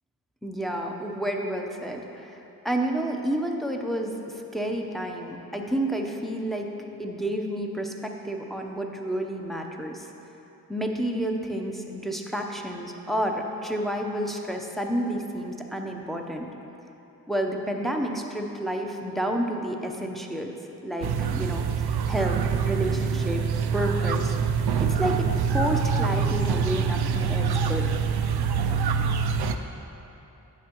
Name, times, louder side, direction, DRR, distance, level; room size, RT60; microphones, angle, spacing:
voice 1, 0.4-2.4 2.6-6.7 7.0-10.1 10.7-16.5 17.3-20.5 20.8-21.7 22.1-23.4 23.7-24.3 24.8-27.9, right 1 dB, ahead, 1 dB, 0.7 m, -30 dB
sound 1, 21.0-29.5, right 6 dB, 70° right, 0.5 m, -25 dB
10.0 x 7.0 x 3.0 m, 3.0 s
cardioid pair, 50°, 39 cm